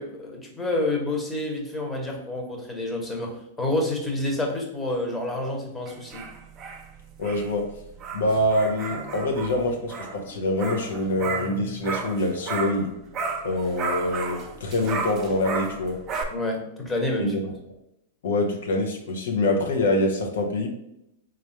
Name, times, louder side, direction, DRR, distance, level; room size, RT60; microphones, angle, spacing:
voice 1, 0.0-6.2 16.3-17.3, left 1 dB, 10° left, 0 dB, 1.0 m, -28 dB
sound 1, 5.9-12.9 13.1-16.2, right 4 dB, 30° right, 0.6 m, -33 dB
voice 2, 7.2-7.6 8.1-12.9 13.4-16.0 17.2-17.3 18.2-20.7, left 1 dB, 75° left, 2 dB, 0.7 m, -25 dB
3.4 x 2.4 x 4.3 m, 0.80 s
hypercardioid pair, 110°, 0 cm